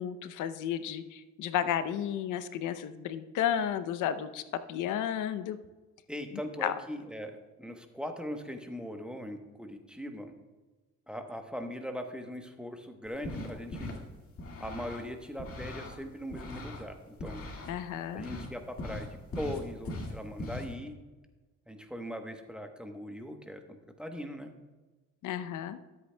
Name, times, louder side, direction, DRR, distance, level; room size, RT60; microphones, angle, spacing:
voice 1, 0.0-4.4 4.7-5.6 6.6-6.7 17.7-18.3 25.2-25.8, left 9 dB, 85° left, 12 dB, 0.7 m, -32 dB
voice 2, 6.1-10.3 11.1-13.9 14.6-17.4 18.1-20.9 21.7-24.5, equal, 5° right, 5 dB, 1.0 m, -40 dB
sound 1, 13.1-14.0 14.4-16.0 16.3-17.7 18.2-18.5 18.8-20.7, left 2 dB, 50° left, 2.0 m, -40 dB
13.0 x 8.3 x 2.2 m, 1.2 s
cardioid pair, 90°, 30 cm